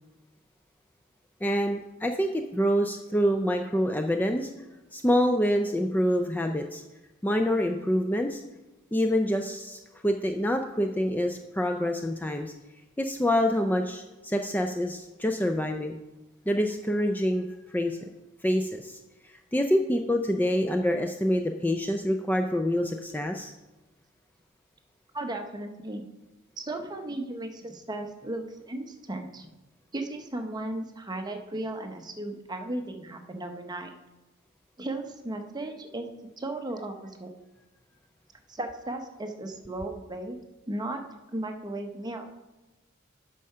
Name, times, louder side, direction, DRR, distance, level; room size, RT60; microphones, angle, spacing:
voice 1, 1.4-4.5 4.9-6.8 7.2-8.4 8.9-12.5 13.0-16.0 16.5-18.0 18.4-19.0 19.2-23.5, equal, 10° left, 5 dB, 0.4 m, -26 dB
voice 2, 25.1-26.0 26.6-29.5 29.9-33.9 34.8-36.1 36.4-37.3 38.5-40.4 40.7-41.0 41.3-42.3, right 1 dB, 20° right, 5 dB, 0.8 m, -35 dB
8.4 x 5.5 x 5.6 m, 1.1 s
head